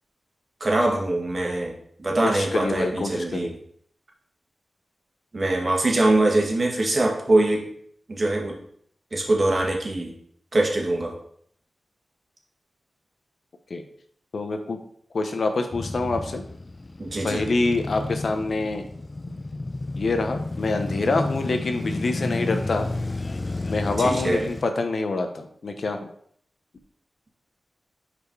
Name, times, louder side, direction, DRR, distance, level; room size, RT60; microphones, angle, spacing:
voice 1, 0.6-1.7 2.0-3.5 5.3-7.7 8.1-8.6 9.1-10.1 10.5-11.1 17.0-17.4 24.0-24.5, right 2 dB, 45° right, 0 dB, 1.7 m, -23 dB
voice 2, 2.2-3.5 13.7-13.8 14.3-14.8 15.1-16.4 17.2-18.9 20.0-22.9 23.7-26.1, left 3 dB, 65° left, 6 dB, 0.8 m, -26 dB
Male speech man speaking / Motorcycle / Idling, 15.7-24.6, left 2 dB, 35° left, 0.4 m, -31 dB
5.4 x 4.3 x 4.6 m, 0.65 s
cardioid pair, 55°, 0 cm